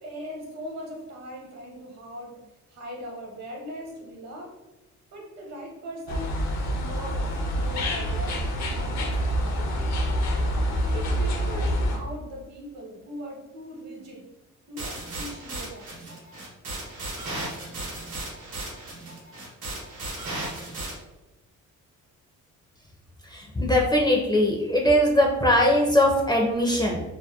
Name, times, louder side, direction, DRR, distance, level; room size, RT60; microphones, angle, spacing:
voice 1, 0.0-2.4 2.7-4.5 5.1-6.4 6.8-9.7 10.9-14.2 14.7-16.0, equal, 60° right, -1 dB, 0.9 m, -39 dB
sound 1, 6.1-12.0, equal, 65° left, 0.6 m, -26 dB
sound 2, 14.8-20.9, right 2 dB, 90° right, 1.0 m, -35 dB
voice 2, 23.2-27.0, left 1 dB, 15° left, -1 dB, 0.4 m, -21 dB
2.7 x 2.1 x 2.2 m, 1.0 s
cardioid pair, 90°, 30 cm